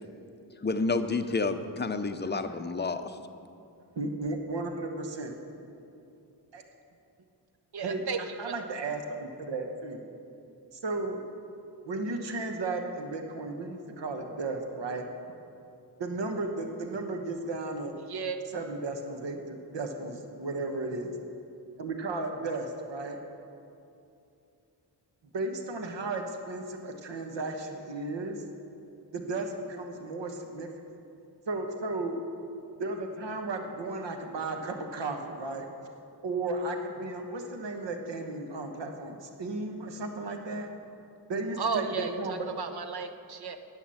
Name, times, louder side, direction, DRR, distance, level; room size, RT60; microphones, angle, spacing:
voice 1, 0.6-3.2, left 3 dB, 25° left, 8 dB, 0.5 m, -29 dB
voice 2, 3.9-5.4 6.5-6.6 7.8-8.0 8.4-10.1 10.7-11.2 11.8-15.1 16.0-17.9 18.5-21.1 21.8-23.2 25.3-28.4 29.1-30.7 31.5-32.1 32.8-35.7 36.2-40.7 41.3-41.8 42.2-42.3, right 2 dB, 80° right, 4 dB, 1.2 m, -34 dB
voice 3, 7.7-8.5 18.1-18.4 41.6-43.6, right 5 dB, 65° right, 9 dB, 0.8 m, -34 dB
11.0 x 8.0 x 7.7 m, 2.7 s
wide cardioid pair, 155°, 42 cm